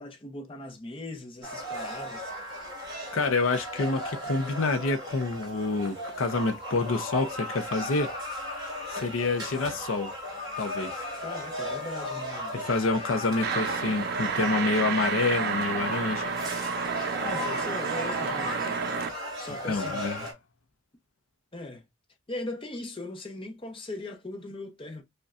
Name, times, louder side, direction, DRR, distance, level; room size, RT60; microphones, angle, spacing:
voice 1, 0.0-2.3 4.4-4.6 11.2-12.6 17.2-18.8 19.4-20.1 21.5-21.8 22.3-25.0, left 2 dB, 25° left, 0.7 m, -39 dB
sound 1, 1.4-20.3, equal, 20° right, 2.1 m, -36 dB
voice 2, 3.1-8.1 8.9-10.1 10.6-11.0 12.5-16.3 19.7-20.2, left 3 dB, 75° left, 0.5 m, -28 dB
sound 2, 13.4-19.1, right 6 dB, 50° right, 0.4 m, -31 dB
5.1 x 2.2 x 2.4 m
head